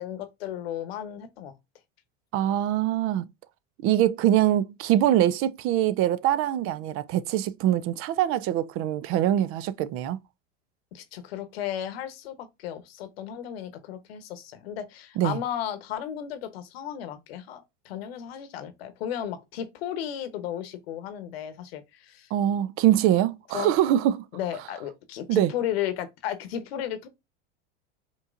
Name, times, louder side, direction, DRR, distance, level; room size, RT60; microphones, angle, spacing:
voice 1, 0.0-1.5 10.9-22.3 23.5-23.7 24.3-27.1, left 10 dB, 80° left, 1.0 m, -34 dB
voice 2, 2.3-3.3 3.8-10.2 15.2-15.4 22.3-24.2 25.3-25.5, right 12 dB, 45° right, 0.5 m, -23 dB
5.2 x 3.0 x 2.5 m
hypercardioid pair, 100°, 30 cm